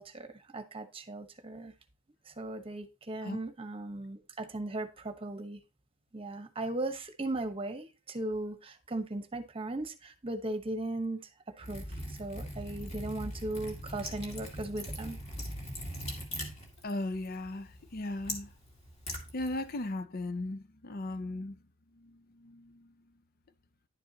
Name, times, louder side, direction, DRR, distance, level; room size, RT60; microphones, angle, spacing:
voice 1, 0.0-1.7 2.3-5.6 6.1-11.2 11.6-15.2, right 2 dB, 30° right, 1.0 m, -37 dB
Liquid, 11.6-19.9, equal, 35° left, 2.2 m, -41 dB
voice 2, 16.8-18.5 19.3-21.6 22.0-22.9, left 2 dB, 50° left, 0.6 m, -37 dB
10.5 x 6.9 x 2.8 m
head